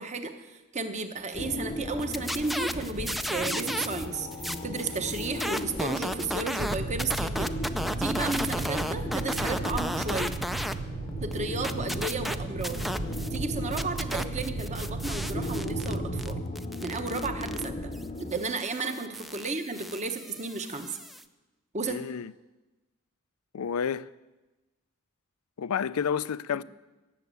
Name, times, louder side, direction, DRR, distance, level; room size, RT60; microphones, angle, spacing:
voice 1, 0.0-7.5 8.0-10.3 11.2-12.8 13.3-16.4 16.8-17.9 18.3-21.0 21.7-22.0, right 3 dB, 35° right, 1.1 m, -33 dB
sound 1, 1.3-18.3, left 1 dB, 30° left, 0.8 m, -37 dB
sound 2, 2.0-4.1 4.3-10.8 11.1-13.4 13.7-21.2, equal, ahead, 0.4 m, -34 dB
sound 3, 6.6-16.4, right 4 dB, 75° right, 0.7 m, -36 dB
voice 2, 21.9-22.3 23.5-24.1 25.6-26.6, left 7 dB, 85° left, 0.4 m, -30 dB
17.5 x 7.3 x 8.2 m
head